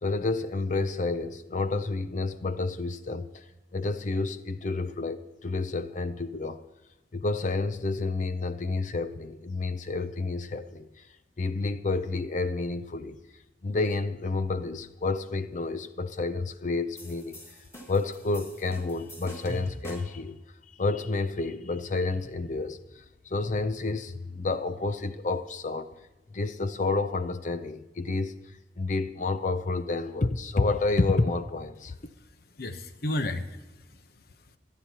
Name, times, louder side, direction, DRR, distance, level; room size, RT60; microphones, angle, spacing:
voice 1, 0.0-3.4 3.7-6.6 7.1-11.1 11.4-13.2 13.6-17.4 17.9-20.4 20.8-25.9 26.3-28.3 28.8-32.0, left 3 dB, 45° left, 0.5 m, -30 dB
sound 1, 17.0-20.3, equal, 15° left, 2.2 m, -44 dB
voice 2, 32.1-34.6, left 1 dB, 60° left, 1.0 m, -35 dB
26.0 x 9.7 x 2.9 m
head